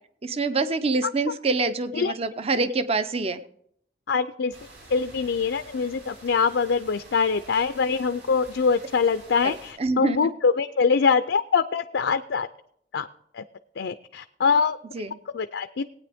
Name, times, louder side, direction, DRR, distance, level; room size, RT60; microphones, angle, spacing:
voice 1, 0.2-3.4 9.4-10.2 14.9-15.2, right 3 dB, 35° right, 11 dB, 0.6 m, -26 dB
voice 2, 4.1-4.5 4.9-12.5 12.9-13.1 13.3-13.4 13.8-14.8 15.3-15.8, left 5 dB, 80° left, 10 dB, 0.5 m, -23 dB
sound 1, 4.5-9.7, right 1 dB, 65° right, 4.8 m, -48 dB
19.0 x 9.1 x 3.5 m, 0.68 s
head